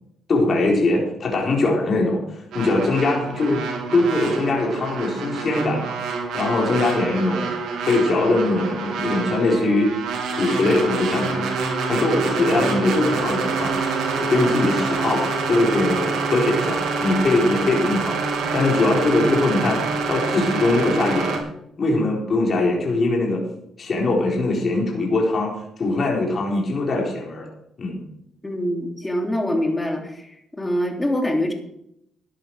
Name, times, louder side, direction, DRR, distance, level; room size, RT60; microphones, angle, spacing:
voice 1, 0.3-3.6 3.9-6.0 6.3-7.5 7.8-9.9 10.3-13.7 14.1-18.2 18.5-19.8 20.1-21.4 21.8-23.4 23.8-25.5 25.8-27.5 27.8-28.0, left 2 dB, 45° left, -2 dB, 4.3 m, -21 dB
sound 1, 2.5-21.4, right 4 dB, 80° right, 3.2 m, -26 dB
voice 2, 28.4-30.3 30.6-31.5, left 1 dB, 15° left, 2 dB, 3.2 m, -24 dB
14.0 x 10.5 x 4.9 m, 0.77 s
cardioid pair, 90°, 0 cm